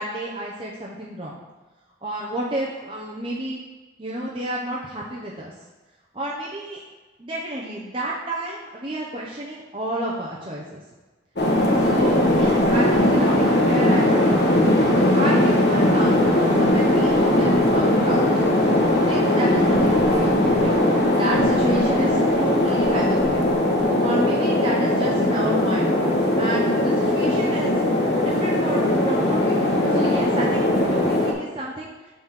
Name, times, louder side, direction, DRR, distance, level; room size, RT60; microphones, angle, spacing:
voice 1, 0.0-1.4 2.0-3.6 4.0-5.5 6.1-6.8 7.2-10.8 11.8-14.5 15.1-18.6 18.9-20.3 20.6-23.4 24.0-25.9 26.4-27.7 28.2-32.1, right 1 dB, 30° right, -4 dB, 0.9 m, -30 dB
sound 1, 11.4-31.3, left 1 dB, 60° left, 1.3 m, -19 dB
6.8 x 4.3 x 6.5 m, 1.3 s
head